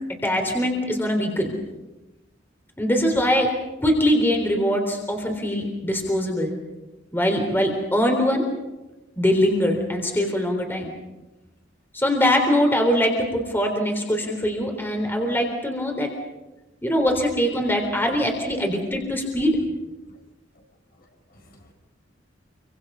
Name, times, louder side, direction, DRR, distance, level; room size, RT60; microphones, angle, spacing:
voice 1, 0.2-1.5 2.8-3.5 3.8-6.5 7.1-8.5 9.2-10.9 11.9-16.1 16.8-19.6, equal, 10° left, 3 dB, 3.7 m, -22 dB
voice 2, 21.3-21.7, equal, 50° left, 3 dB, 4.9 m, -48 dB
28.5 x 25.0 x 5.6 m, 1.0 s
head